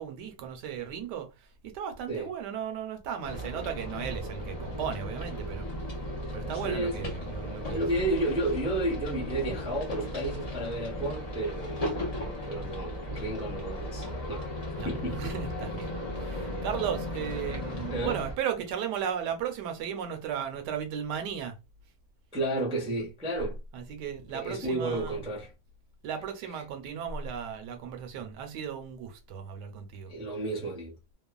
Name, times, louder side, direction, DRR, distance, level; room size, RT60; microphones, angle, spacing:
voice 1, 0.0-6.0 6.3-7.8 14.8-15.9 16.2-21.5 23.0-23.1 23.7-25.2 26.0-30.1, right 8 dB, 75° right, 1.2 m, -35 dB
sound 1, 3.2-18.3, left 1 dB, 65° left, 0.3 m, -36 dB
voice 2, 6.5-7.0 7.7-11.8 12.4-14.5 14.8-15.2 17.9-18.3 22.3-23.6 24.3-25.5 30.1-30.9, right 1 dB, 10° right, 0.4 m, -32 dB
3.0 x 2.2 x 2.2 m
omnidirectional pair, 1.9 m